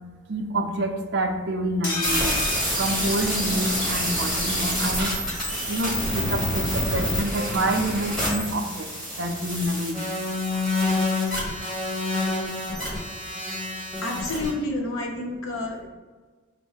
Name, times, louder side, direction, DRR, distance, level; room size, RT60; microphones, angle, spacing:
voice 1, 0.3-2.4 2.8-5.1 5.7-8.9 9.2-10.0, right 1 dB, 55° right, 4 dB, 0.5 m, -27 dB
sound 1, 1.8-3.8 4.1-4.2 4.5-4.6, left 2 dB, 40° left, 1.5 m, -31 dB
sound 2, 2.0-14.5, left 1 dB, 5° left, 1.2 m, -27 dB
voice 2, 14.0-15.9, left 2 dB, 80° left, 2 dB, 0.8 m, -29 dB
5.2 x 2.1 x 4.8 m, 1.3 s
head